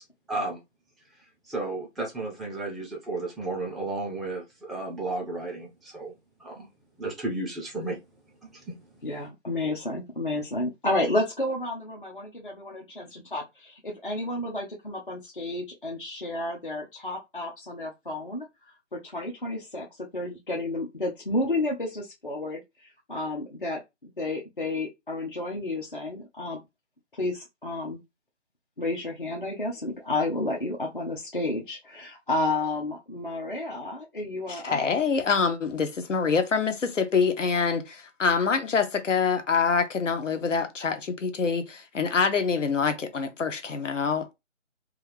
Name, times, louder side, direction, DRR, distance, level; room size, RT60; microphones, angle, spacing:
voice 1, 0.3-0.6 1.5-6.1 6.4-6.7 7.0-8.0 8.4-8.8, right 2 dB, ahead, 0.4 m, -33 dB
voice 2, 9.0-18.5 18.9-19.9 20.1-26.6 27.1-28.0 28.8-34.9, left 2 dB, 45° left, 0.6 m, -31 dB
voice 3, 34.5-44.3, left 5 dB, 85° left, 0.8 m, -25 dB
2.4 x 2.3 x 3.2 m
figure-of-eight pair, 180°, 36 cm